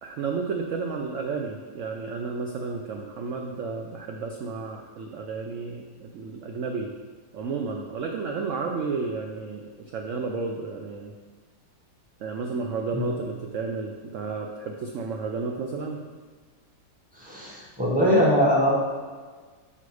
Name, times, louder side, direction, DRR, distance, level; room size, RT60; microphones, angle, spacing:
voice 1, 0.0-6.9 7.3-11.1 12.2-16.0, right 4 dB, 65° right, 2 dB, 0.7 m, -32 dB
voice 2, 17.1-18.7, equal, 5° right, -4 dB, 1.3 m, -22 dB
5.7 x 5.6 x 4.8 m, 1.5 s
omnidirectional pair, 1.8 m